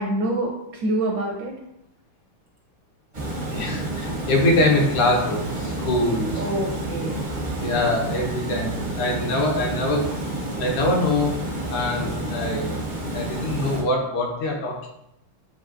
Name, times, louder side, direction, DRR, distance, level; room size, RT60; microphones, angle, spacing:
voice 1, 0.0-1.6 6.4-7.3, right 1 dB, 70° right, 0 dB, 1.1 m, -26 dB
Water, 3.1-13.8, right 1 dB, 55° right, 0.5 m, -29 dB
voice 2, 3.5-6.4 7.6-10.1 10.6-11.3 11.7-12.8 13.1-14.9, left 1 dB, 80° left, -1 dB, 1.9 m, -23 dB
7.5 x 2.8 x 2.5 m, 0.80 s
omnidirectional pair, 2.4 m